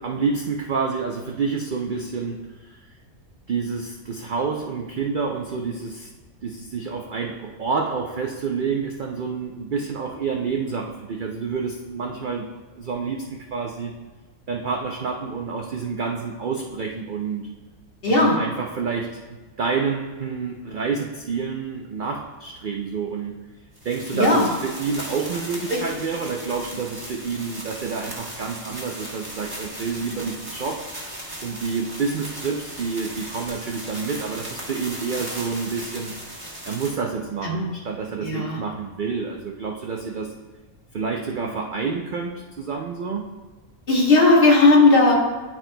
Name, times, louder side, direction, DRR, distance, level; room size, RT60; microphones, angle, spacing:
voice 1, 0.0-2.8 3.5-6.1 6.4-12.5 12.8-13.9 14.5-17.5 18.1-19.2 19.6-23.4 23.8-30.8 31.4-36.1 36.6-40.3 40.9-43.3, right 5 dB, 70° right, 1 dB, 0.4 m, -28 dB
voice 2, 18.0-18.4 24.1-24.5 25.7-25.8 37.4-37.7 38.2-38.6 43.9-45.1, left 2 dB, 45° left, -2 dB, 1.3 m, -16 dB
sound 1, 23.8-36.9, right 1 dB, 15° right, 1.2 m, -37 dB
12.0 x 4.4 x 2.2 m, 1.3 s
omnidirectional pair, 1.5 m